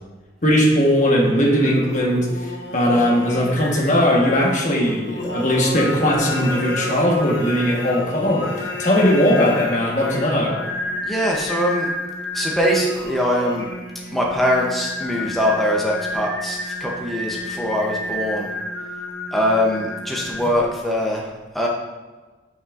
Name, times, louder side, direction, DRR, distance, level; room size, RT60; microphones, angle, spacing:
voice 1, 0.4-10.6, equal, 45° left, -2 dB, 1.2 m, -19 dB
Singing, 1.2-20.8, left 1 dB, 80° left, 0.7 m, -31 dB
voice 2, 11.0-11.9 12.3-13.7 14.1-18.5 19.3-21.7, equal, ahead, -2 dB, 0.6 m, -22 dB
7.3 x 5.6 x 2.4 m, 1.3 s
head